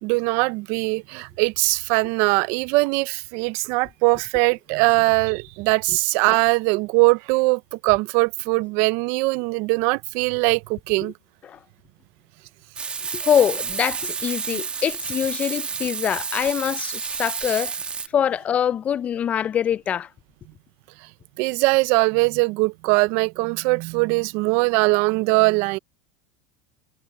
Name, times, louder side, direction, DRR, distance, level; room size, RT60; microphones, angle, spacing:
voice 1, 0.0-11.1 21.4-25.8, right 26 dB, 65° right, 0.6 m, -21 dB
Frying (food), 12.8-18.1, right 6 dB, 25° right, 1.6 m, -30 dB
voice 2, 13.1-17.7 18.1-20.1, left 9 dB, 30° left, 0.5 m, -24 dB
supercardioid pair, 115°, 4 cm